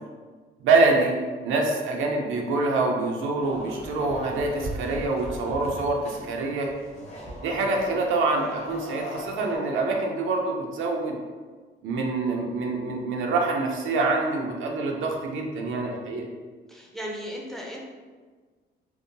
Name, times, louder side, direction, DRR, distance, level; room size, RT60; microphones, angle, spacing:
voice 1, 0.6-1.2 1.4-6.7 7.4-11.2 11.8-16.3, right 3 dB, 80° right, 1 dB, 0.5 m, -25 dB
sound 1, 3.4-9.6, equal, 35° left, 0.8 m, -38 dB
voice 2, 16.7-17.8, equal, ahead, -1 dB, 0.5 m, -36 dB
2.7 x 2.2 x 2.5 m, 1.4 s
cardioid pair, 90°, 20 cm